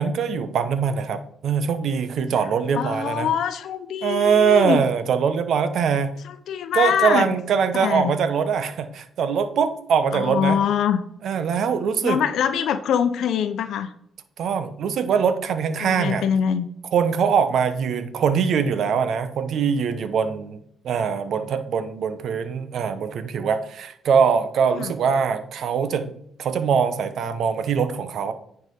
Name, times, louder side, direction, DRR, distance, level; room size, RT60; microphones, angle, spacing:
voice 1, 0.0-3.3 4.0-6.2 6.7-10.6 11.2-12.2 14.4-16.2 16.9-20.6 20.8-26.1 26.4-28.3, right 6 dB, 65° right, 11 dB, 0.9 m, -22 dB
voice 2, 2.7-4.8 6.2-7.3 7.7-8.2 10.1-11.0 12.0-13.9 15.8-16.6 24.7-24.9, left 8 dB, 75° left, 10 dB, 0.7 m, -23 dB
9.5 x 5.0 x 5.3 m, 0.68 s
cardioid pair, 90°, 0 cm